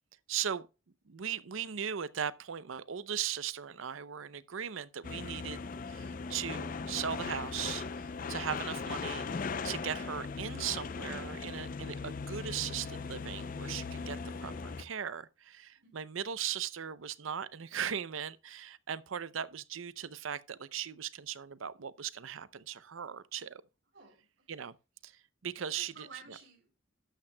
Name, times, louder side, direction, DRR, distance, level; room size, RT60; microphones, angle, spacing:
voice 1, 0.3-0.6 1.1-5.6 5.9-23.6 24.5-24.7 25.0-25.1 25.4-26.1, right 8 dB, 75° right, 0.6 m, -38 dB
sound 1, 5.0-14.8, left 4 dB, 40° left, 0.4 m, -39 dB
voice 2, 25.7-26.9, right 5 dB, 60° right, 4.8 m, -52 dB
12.5 x 8.7 x 2.2 m
head